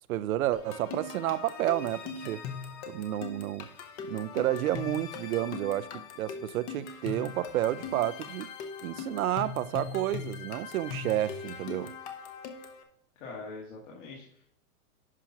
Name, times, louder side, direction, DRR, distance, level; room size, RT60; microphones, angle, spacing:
voice 1, 0.1-2.4 2.9-3.7 4.1-8.5 8.8-11.9, right 13 dB, 70° right, 0.5 m, -30 dB
sound 1, 0.5-12.8, left 5 dB, 25° left, 0.7 m, -40 dB
voice 2, 13.2-14.6, left 3 dB, 55° left, 2.1 m, -43 dB
10.5 x 5.8 x 2.9 m
hypercardioid pair, 155°, 45 cm